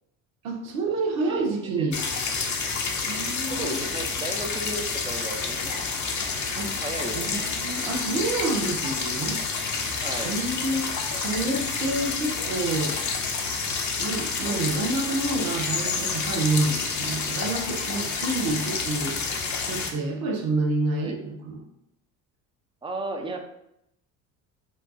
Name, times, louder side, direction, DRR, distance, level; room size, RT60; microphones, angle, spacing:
voice 1, 0.4-2.0 3.1-3.8 6.6-6.7 7.1-9.4 10.2-10.8 11.1-13.0 14.0-19.2 19.6-21.6, right 2 dB, 80° right, 1 dB, 1.0 m, -28 dB
voice 2, 1.2-1.9 3.5-5.8 6.8-7.6 10.0-10.3 14.4-14.7 21.0-21.2 22.8-23.4, right 2 dB, 10° right, 3 dB, 0.8 m, -35 dB
sound 1, 1.9-19.9, left 4 dB, 45° left, 1.0 m, -29 dB
5.3 x 2.4 x 4.0 m, 0.80 s
hypercardioid pair, 65°, 42 cm